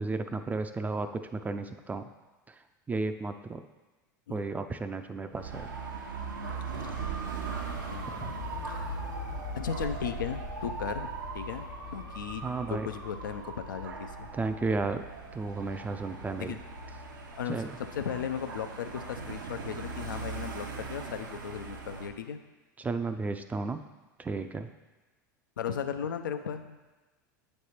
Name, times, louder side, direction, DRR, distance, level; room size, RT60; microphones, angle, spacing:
voice 1, 0.0-2.1 2.9-3.6 4.3-5.7 8.2-8.3 12.4-12.9 14.3-15.0 15.3-16.6 17.5-17.7 22.8-23.8 24.2-24.7, right 3 dB, 15° right, 8 dB, 0.4 m, -33 dB
Dog / Motorcycle, 5.3-22.1, right 5 dB, 85° right, 0.8 m, -40 dB
sound 1, 6.8-16.8, left 4 dB, 65° left, 1.0 m, -44 dB
voice 2, 8.6-9.0 9.5-14.3 16.4-16.6 17.3-22.4 25.6-26.8, left 8 dB, 85° left, 9 dB, 0.4 m, -36 dB
8.2 x 3.3 x 4.3 m, 1.2 s
hypercardioid pair, 90°, 10 cm